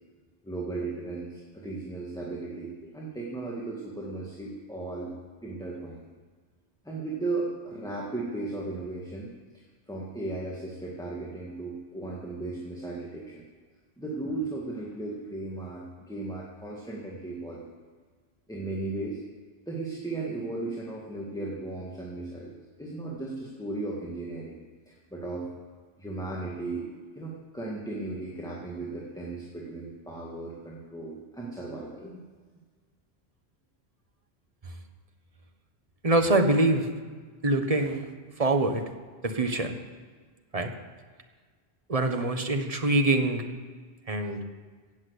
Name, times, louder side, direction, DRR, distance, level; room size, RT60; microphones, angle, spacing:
voice 1, 0.4-5.1 5.4-6.0 6.8-13.4 14.0-17.6 18.5-19.2 19.7-24.5 24.9-25.5 26.0-26.9 27.2-32.2, right 2 dB, 5° left, -4 dB, 1.9 m, -36 dB
voice 2, 36.0-36.9 37.4-38.1 38.4-38.8 39.2-39.7 40.5-40.7 41.9-43.4 44.1-44.4, right 2 dB, 35° right, 6 dB, 1.3 m, -24 dB
16.5 x 7.4 x 8.2 m, 1.5 s
omnidirectional pair, 1.1 m